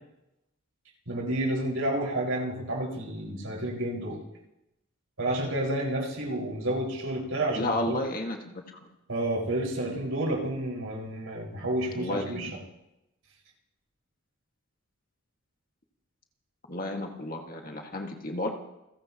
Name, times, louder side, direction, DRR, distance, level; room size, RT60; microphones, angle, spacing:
voice 1, 1.0-4.2 5.2-8.0 9.1-12.5, right 1 dB, 85° right, -2 dB, 5.2 m, -30 dB
voice 2, 7.5-8.9 11.9-12.5 16.7-18.5, left 1 dB, 40° left, 2 dB, 1.8 m, -32 dB
28.5 x 16.5 x 3.0 m, 0.88 s
head